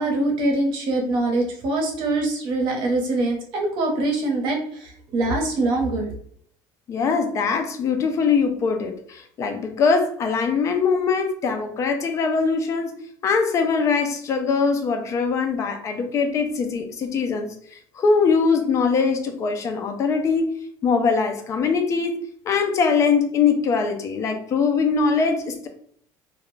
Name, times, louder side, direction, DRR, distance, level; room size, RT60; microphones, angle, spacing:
voice 1, 0.0-6.1, right 2 dB, 60° right, 1 dB, 0.8 m, -23 dB
voice 2, 6.9-12.9 13.2-22.2 22.5-25.7, left 5 dB, 35° left, 6 dB, 0.4 m, -22 dB
2.4 x 2.1 x 3.1 m, 0.62 s
cardioid pair, 145°, 9 cm